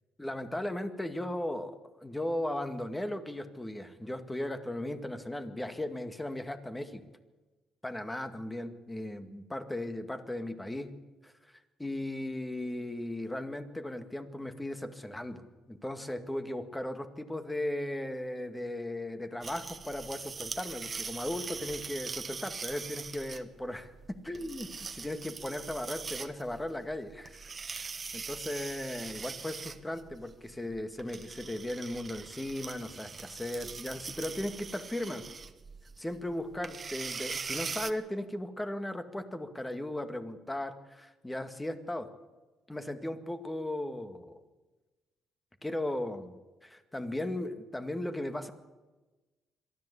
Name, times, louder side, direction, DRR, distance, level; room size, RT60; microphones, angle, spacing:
voice 1, 0.2-7.0 7.8-10.9 11.2-11.3 11.8-23.9 24.2-35.2 36.0-42.1 42.7-44.4 45.6-46.3 46.6-48.5, left 1 dB, 10° left, 8 dB, 2.0 m, -37 dB
sound 1, 19.4-37.9, right 5 dB, 40° right, 1.2 m, -42 dB
22.5 x 14.0 x 8.3 m, 1.2 s
supercardioid pair, 75°, 0 cm